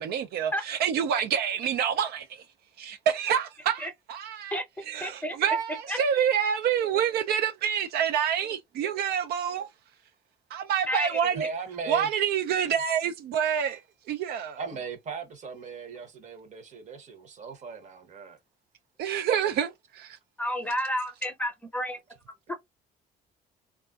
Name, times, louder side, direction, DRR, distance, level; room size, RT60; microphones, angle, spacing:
voice 1, 0.0-2.4 2.8-4.6 4.9-9.7 10.5-11.5 11.9-13.8 14.1-14.6 19.0-20.2, right 8 dB, 70° right, 0.4 m, -27 dB
voice 2, 5.0-5.4 5.9-6.0 10.9-11.4 20.4-22.0 22.5-22.6, equal, 10° left, 0.7 m, -30 dB
voice 3, 11.3-12.1 14.6-18.4, right 5 dB, 45° right, 0.9 m, -38 dB
3.4 x 2.4 x 2.3 m
cardioid pair, 110°, 17 cm